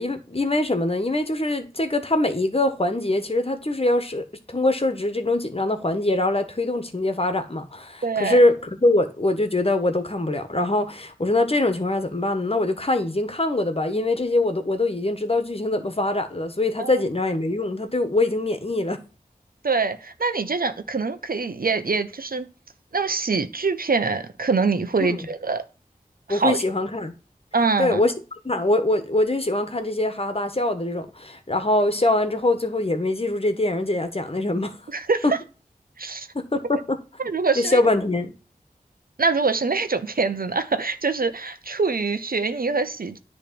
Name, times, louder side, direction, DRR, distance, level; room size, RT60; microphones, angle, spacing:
voice 1, 0.0-19.0 25.1-25.2 26.3-27.1 27.8-28.1 28.4-34.7 35.2-35.3 36.3-37.0 37.5-38.3, left 2 dB, 40° left, 1.4 m, -23 dB
voice 2, 8.0-8.4 16.8-17.0 19.6-22.5 22.9-25.6 26.3-26.6 27.5-28.0 34.9-35.4 36.0-36.3 37.2-37.8 39.2-43.2, right 4 dB, 75° right, 1.0 m, -24 dB
10.0 x 3.4 x 6.9 m
wide cardioid pair, 40°, 15 cm